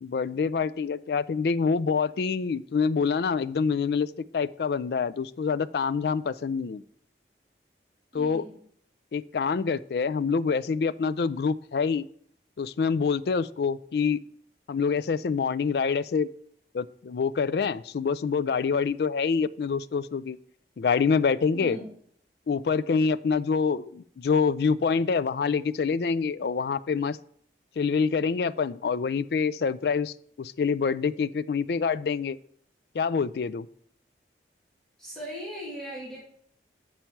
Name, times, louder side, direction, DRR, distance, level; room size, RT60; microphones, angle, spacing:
voice 1, 0.0-6.8 8.1-8.4 9.1-12.1 12.6-14.2 14.7-16.3 16.7-20.4 20.8-21.8 22.5-27.2 27.8-32.4 32.9-33.7, left 5 dB, 65° left, 16 dB, 0.4 m, -26 dB
voice 2, 8.1-8.6 21.5-22.0 35.0-36.2, equal, 5° left, -7 dB, 2.5 m, -39 dB
8.7 x 5.6 x 4.5 m, 0.63 s
head